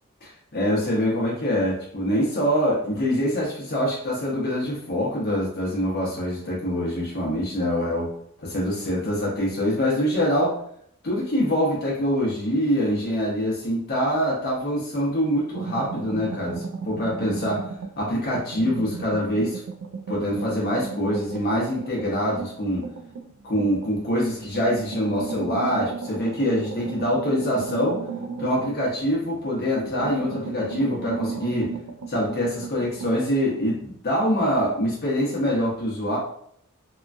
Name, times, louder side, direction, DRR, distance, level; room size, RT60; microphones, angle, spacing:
voice 1, 0.2-8.1 8.4-10.6 11.0-17.6 18.0-19.6 20.1-22.9 23.4-28.0 28.4-31.7 32.1-36.2, equal, 45° left, -4 dB, 0.7 m, -24 dB
sound 1, 15.5-18.0 18.3-23.9 24.4-29.4 29.8-33.1, right 5 dB, 80° right, 0.4 m, -35 dB
2.9 x 2.3 x 2.5 m, 0.67 s
head